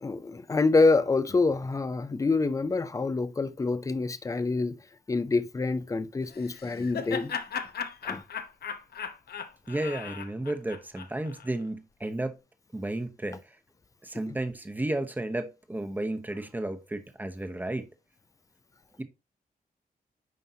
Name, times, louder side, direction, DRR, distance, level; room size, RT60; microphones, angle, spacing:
voice 1, 0.0-4.8 5.1-7.3 8.0-8.2, left 3 dB, 20° left, 0.6 m, -26 dB
Laughter, 6.3-11.5, left 7 dB, 90° left, 0.9 m, -37 dB
voice 2, 9.7-12.4 12.7-13.6 14.0-17.9 19.0-19.1, right 1 dB, 10° right, 0.9 m, -33 dB
9.3 x 5.4 x 2.8 m
wide cardioid pair, 175°, 16 cm